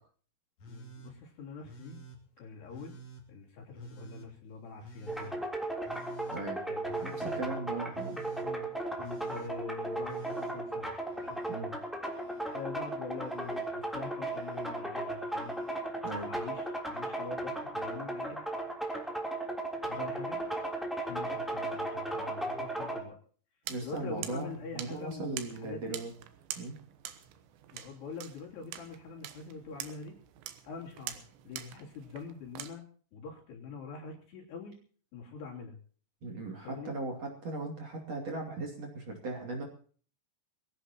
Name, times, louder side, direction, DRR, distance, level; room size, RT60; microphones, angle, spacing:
Telephone, 0.6-1.1 1.6-2.2 2.7-3.2 3.7-4.3 4.8-5.3 5.8-6.4 6.9-7.4 7.9-8.5 9.0-9.5 10.0-11.6 11.9-12.6 13.2-13.7 14.2-14.7 15.3-15.8 17.0-17.1, right 2 dB, 40° left, 3.4 m, -51 dB
voice 1, 0.7-2.0 2.4-3.0 3.3-5.4 6.7-7.5 8.4-10.9 11.2-11.8 12.5-15.6 16.2-18.4 19.9-20.4 21.0-23.2 23.8-26.0 27.7-30.2 30.7-32.8 33.1-34.7 35.1-35.8 36.6-36.9, left 5 dB, 65° left, -1 dB, 5.2 m, -44 dB
sound 1, 5.1-23.0, right 2 dB, ahead, 2.5 m, -36 dB
voice 2, 7.0-8.2 11.5-11.7 16.0-16.3 23.7-26.1 26.5-26.7 36.2-39.6, right 2 dB, 40° right, 1 dB, 3.3 m, -38 dB
sound 2, 23.6-32.7, right 11 dB, 80° right, 3.4 m, -45 dB
23.0 x 16.5 x 3.0 m, 0.43 s
omnidirectional pair, 5.1 m